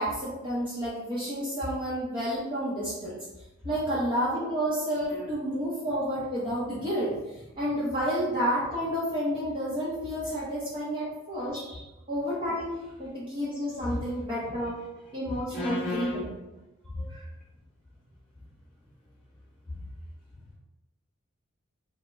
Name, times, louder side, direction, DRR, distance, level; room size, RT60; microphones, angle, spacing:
voice 1, 0.0-3.1 3.6-11.6 12.1-14.7 15.1-16.3 17.1-17.3, equal, 25° right, -8 dB, 0.7 m, -30 dB
voice 2, 15.3-16.3 16.9-17.1, left 2 dB, 5° left, -9 dB, 1.0 m, -34 dB
3.0 x 2.0 x 3.4 m, 1.0 s
head